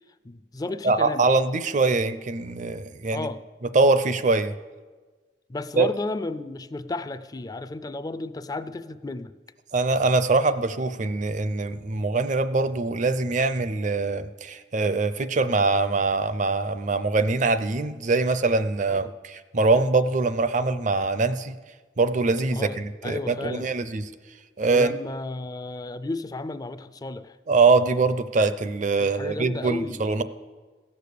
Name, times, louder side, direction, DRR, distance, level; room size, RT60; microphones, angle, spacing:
voice 1, 0.2-1.3 3.1-3.4 5.5-9.3 18.9-19.0 22.5-22.8 23.0-23.7 24.7-27.4 29.0-30.1, left 2 dB, 20° left, 12 dB, 0.4 m, -33 dB
voice 2, 0.8-3.3 3.7-4.5 5.8-5.9 9.7-21.6 22.0-24.1 24.6-24.9 27.5-30.2, right 3 dB, 45° right, 12 dB, 0.5 m, -23 dB
16.5 x 6.8 x 6.8 m, 1.4 s
head